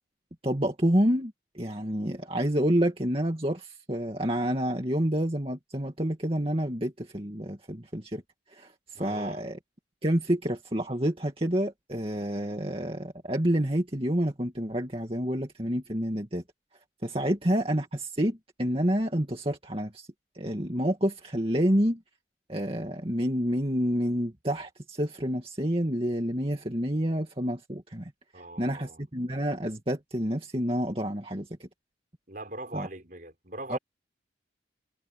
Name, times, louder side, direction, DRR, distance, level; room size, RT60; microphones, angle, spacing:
voice 1, 0.4-8.2 8.5-9.6 10.0-16.4 17.0-20.1 20.3-22.0 22.5-31.7 32.7-32.9 33.7-33.8, equal, 30° right, 2.4 m, -28 dB
voice 2, 8.9-9.4 28.3-29.0 32.3-33.8, right 2 dB, 45° right, 5.0 m, -41 dB
head